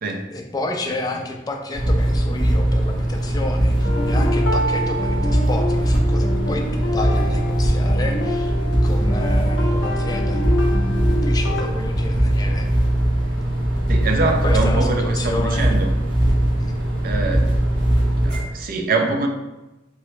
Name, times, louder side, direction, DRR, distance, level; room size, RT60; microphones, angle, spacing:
voice 1, 0.3-8.5 8.8-10.4 11.2-12.7 14.4-15.7 16.6-16.8, left 2 dB, 20° left, 2 dB, 0.3 m, -30 dB
sound 1, 1.7-18.4, right 1 dB, 90° right, 1.4 m, -20 dB
sound 2, 3.8-11.6, left 1 dB, 80° left, 0.5 m, -27 dB
voice 2, 13.9-15.9 17.0-17.5 18.2-19.3, right 3 dB, 50° right, 4 dB, 0.4 m, -24 dB
3.7 x 2.1 x 3.0 m, 1.0 s
head